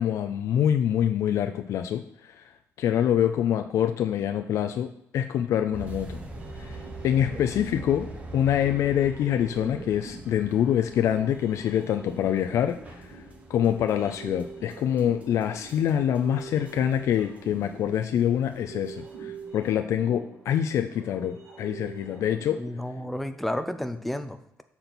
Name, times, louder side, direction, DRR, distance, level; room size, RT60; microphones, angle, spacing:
voice 1, 0.0-2.4 2.8-6.2 6.6-6.8 7.0-8.1 8.3-13.2 13.5-22.6, left 10 dB, 75° left, 7 dB, 0.4 m, -25 dB
sound 1, 5.7-19.6, right 2 dB, 25° right, 1.0 m, -44 dB
sound 2, 6.3-23.1, right 4 dB, 60° right, 2.5 m, -44 dB
voice 2, 22.6-24.6, left 1 dB, 5° left, 9 dB, 0.5 m, -32 dB
6.7 x 4.3 x 5.9 m, 0.75 s
wide cardioid pair, 160°, 5 cm